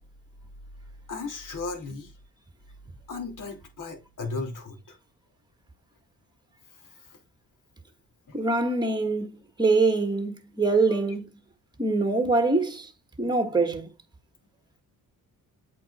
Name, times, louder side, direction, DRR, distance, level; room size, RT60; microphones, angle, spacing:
voice 1, 1.1-2.1 3.1-5.0 6.8-7.1 8.3-8.4 10.9-11.1, left 3 dB, 55° left, 3.1 m, -36 dB
voice 2, 8.3-11.3 11.8-12.9 13.2-13.9, right 3 dB, 10° right, 1.5 m, -24 dB
8.4 x 4.6 x 4.2 m
cardioid pair, 105°, 37 cm